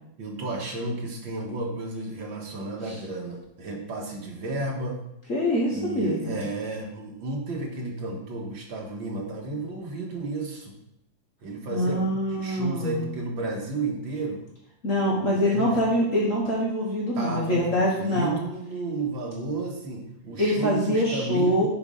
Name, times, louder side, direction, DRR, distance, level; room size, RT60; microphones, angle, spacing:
voice 1, 0.2-5.0 5.7-10.8 11.4-14.4 15.1-15.8 17.2-21.7, right 3 dB, 85° right, -1 dB, 2.4 m, -32 dB
voice 2, 5.3-6.4 11.7-13.1 14.8-18.4 20.4-21.7, equal, 45° left, -4 dB, 1.6 m, -24 dB
7.0 x 5.1 x 5.6 m, 0.81 s
omnidirectional pair, 2.1 m